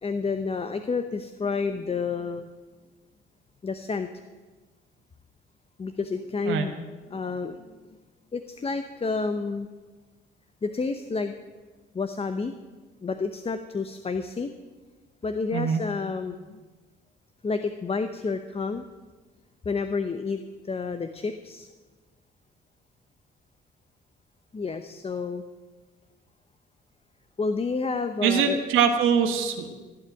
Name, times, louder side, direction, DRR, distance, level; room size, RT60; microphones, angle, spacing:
voice 1, 0.0-2.5 3.6-4.1 5.8-6.7 7.1-7.8 8.3-9.7 10.6-11.3 11.9-12.5 13.0-14.5 15.2-16.6 17.4-18.8 19.6-20.4 20.6-21.7 24.5-25.4 27.4-28.6, left 4 dB, 30° left, 8 dB, 0.8 m, -30 dB
voice 2, 28.2-29.7, right 7 dB, 85° right, 5 dB, 1.4 m, -23 dB
15.5 x 7.6 x 8.9 m, 1.3 s
cardioid pair, 90°, 20 cm